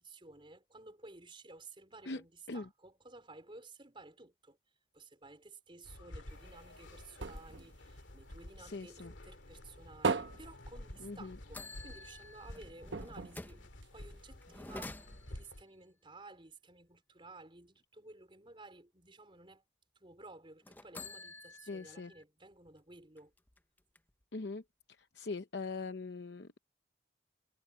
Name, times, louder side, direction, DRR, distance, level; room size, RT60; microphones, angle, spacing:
voice 1, 0.0-4.6 4.9-13.6 13.9-19.6 20.0-23.3, right 3 dB, 30° right, 4.4 m, -55 dB
sound 1, 5.8-15.6, left 1 dB, 80° left, 2.2 m, -51 dB
sound 2, 6.3-8.9 9.3-11.6 11.9-12.0 12.3-12.4 12.9-14.4 15.0-15.1, right 4 dB, 75° right, 1.1 m, -39 dB
voice 2, 8.6-9.1 11.0-11.4 21.7-22.1 24.3-24.6 25.1-26.5, left 3 dB, 60° left, 0.8 m, -41 dB
sound 3, 10.9-11.1 11.5-13.7 14.4-15.5 20.6-22.2 22.7-22.8 23.2-24.2, left 2 dB, 10° left, 0.6 m, -49 dB
head